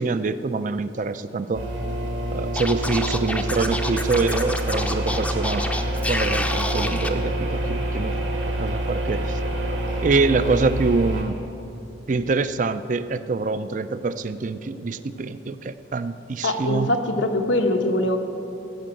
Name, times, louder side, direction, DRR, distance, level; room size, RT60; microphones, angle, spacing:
voice 1, 0.0-1.7 2.3-5.6 6.1-8.2 8.5-9.4 10.0-11.4 12.1-16.9 17.5-17.6, right 3 dB, 40° right, 13 dB, 0.4 m, -25 dB
sound 1, 1.5-11.2, right 1 dB, 75° right, 2.5 m, -27 dB
Scratching (performance technique), 2.5-7.1, left 1 dB, 5° left, 0.5 m, -28 dB
voice 2, 16.4-18.2, left 1 dB, 90° left, 4 dB, 1.1 m, -22 dB
15.5 x 6.2 x 7.7 m, 2.8 s
head